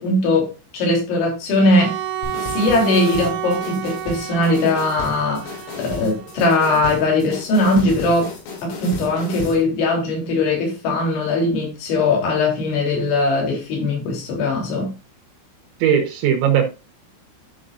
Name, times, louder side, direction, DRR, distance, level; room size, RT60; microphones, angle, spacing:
voice 1, 0.0-2.0 2.4-8.3 8.6-14.9, left 2 dB, 65° left, 5.6 m, -20 dB
Bowed string instrument, 1.5-6.5, right 10 dB, 90° right, 3.3 m, -31 dB
sound 1, 2.2-9.6, left 4 dB, 85° left, 5.9 m, -33 dB
voice 2, 15.8-16.7, right 9 dB, 75° right, 3.2 m, -18 dB
12.5 x 5.9 x 2.5 m
omnidirectional pair, 5.9 m